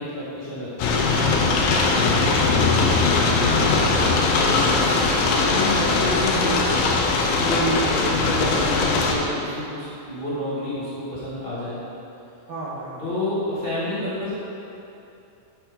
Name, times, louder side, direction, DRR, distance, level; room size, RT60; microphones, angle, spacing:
voice 1, 0.0-4.1 5.4-6.7 7.4-11.8 13.0-14.3, left 1 dB, 40° left, -11 dB, 0.7 m, -29 dB
sound 1, 0.8-9.1, left 3 dB, 85° left, 2.2 m, -20 dB
voice 2, 3.6-5.1 12.5-13.0, right 1 dB, 80° right, -9 dB, 0.9 m, -36 dB
8.4 x 6.7 x 3.4 m, 2.8 s
omnidirectional pair, 3.5 m